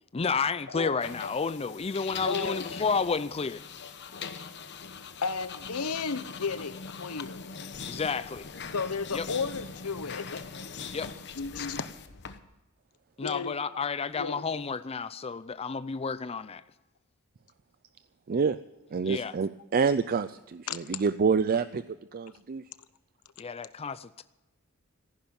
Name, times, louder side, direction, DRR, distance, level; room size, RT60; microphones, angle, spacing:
voice 1, 0.1-3.6 7.9-8.5 9.1-9.3 10.9-11.1 13.2-16.6 19.0-19.3 23.4-24.2, left 5 dB, 25° left, 14 dB, 0.4 m, -31 dB
sound 1, 1.0-12.4, left 5 dB, 55° left, 1.1 m, -41 dB
voice 2, 2.2-2.7 5.2-7.5 8.7-10.5 11.3-11.9 13.2-13.8 14.1-14.4 19.0-19.1 20.7-21.0, left 5 dB, 80° left, 13 dB, 0.9 m, -33 dB
voice 3, 18.9-21.8 22.1-22.6, right 5 dB, 40° right, 13 dB, 0.4 m, -27 dB
15.0 x 11.0 x 7.1 m, 1.0 s
head